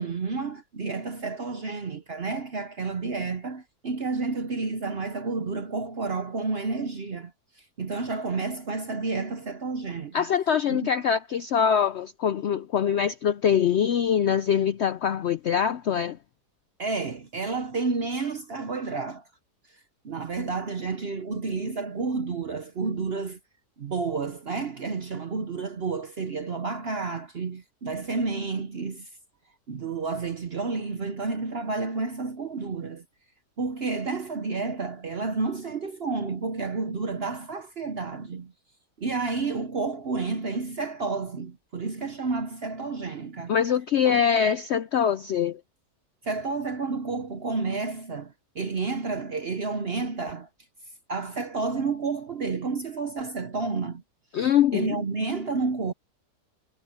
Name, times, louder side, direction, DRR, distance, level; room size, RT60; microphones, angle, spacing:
voice 1, 0.0-7.3 7.8-10.2 10.7-10.9 16.8-19.2 20.0-23.4 23.8-29.1 29.7-33.0 33.6-38.5 39.0-43.6 44.0-44.2 46.2-50.5 51.1-54.0 54.4-55.9, right 4 dB, 45° right, 0.9 m, -30 dB
voice 2, 10.1-16.2 43.5-45.6 54.3-55.0, left 8 dB, 70° left, 0.6 m, -23 dB
omnidirectional pair, 1.7 m